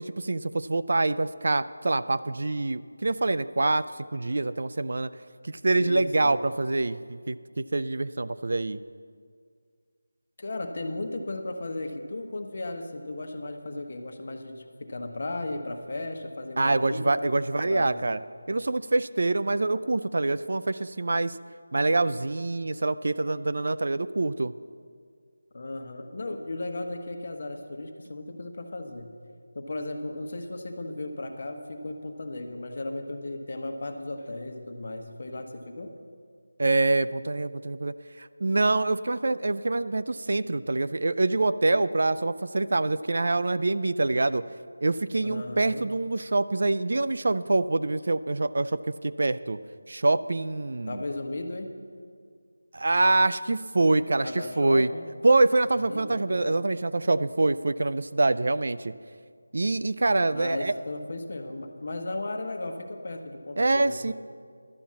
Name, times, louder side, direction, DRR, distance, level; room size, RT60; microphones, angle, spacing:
voice 1, 0.0-3.8 4.1-5.1 5.4-8.8 16.6-18.2 18.5-21.4 21.7-24.5 36.6-44.4 44.8-49.6 49.9-51.0 52.7-54.9 55.2-58.9 59.5-60.7 63.6-64.1, right 2 dB, 55° right, 13 dB, 0.4 m, -25 dB
voice 2, 5.8-6.4 10.4-18.2 25.5-29.1 29.5-35.9 45.2-45.9 50.9-51.7 54.1-55.1 55.8-56.6 60.3-64.1, left 2 dB, 45° left, 4 dB, 1.1 m, -36 dB
12.0 x 7.1 x 7.5 m, 2.1 s
figure-of-eight pair, 170°, 0 cm